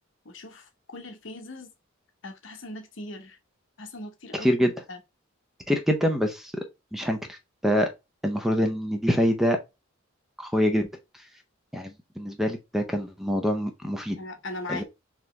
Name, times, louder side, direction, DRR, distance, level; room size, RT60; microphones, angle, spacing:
voice 1, 0.2-1.7 2.2-3.4 3.8-4.5 4.9-5.0 14.2-14.8, left 2 dB, 65° left, 0.9 m, -39 dB
voice 2, 4.4-4.7 5.7-6.5 6.9-7.4 7.6-7.9 8.2-9.6 10.4-10.9 11.7-14.2 14.7-14.8, equal, ahead, 0.5 m, -25 dB
4.1 x 2.9 x 3.1 m
head